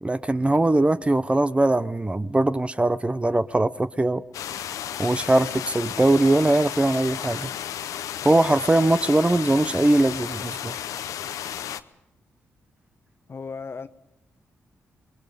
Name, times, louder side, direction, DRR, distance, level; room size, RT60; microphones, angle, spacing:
voice 1, 0.0-4.2 5.0-7.5 8.2-10.8, right 2 dB, 20° right, 0.7 m, -21 dB
sound 1, 4.3-11.8, left 10 dB, 80° left, 0.7 m, -33 dB
voice 2, 13.3-13.9, left 5 dB, 45° left, 1.0 m, -35 dB
27.0 x 20.5 x 5.2 m
supercardioid pair, 45°, 6 cm